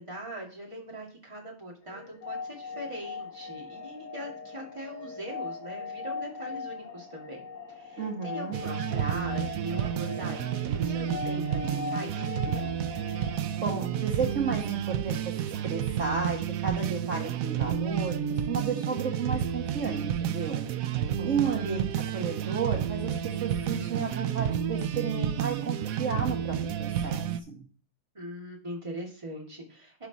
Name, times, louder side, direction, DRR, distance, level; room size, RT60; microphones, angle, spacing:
voice 1, 0.0-7.4 7.7-12.8 21.2-21.6 28.1-30.1, right 1 dB, 20° right, -2 dB, 2.2 m, -41 dB
sound 1, 1.8-14.6, left 5 dB, 80° left, 3.8 m, -40 dB
voice 2, 8.0-8.6 13.6-15.3 15.6-20.7 21.2-27.6, right 5 dB, 50° right, 0 dB, 1.5 m, -33 dB
sound 2, 8.5-27.4, right 9 dB, 65° right, 0.9 m, -30 dB
12.0 x 5.0 x 4.1 m, 0.42 s
omnidirectional pair, 1.8 m